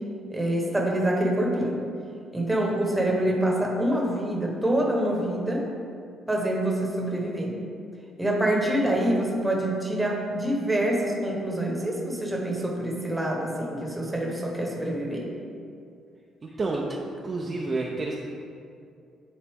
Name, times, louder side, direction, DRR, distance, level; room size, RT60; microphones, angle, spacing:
voice 1, 0.3-1.8 2.3-5.7 6.3-7.6 8.2-15.3, right 1 dB, 10° right, -1 dB, 1.1 m, -26 dB
voice 2, 16.4-18.2, right 2 dB, 30° right, -2 dB, 0.6 m, -30 dB
10.0 x 4.0 x 3.5 m, 2.4 s
cardioid pair, 125°, 0 cm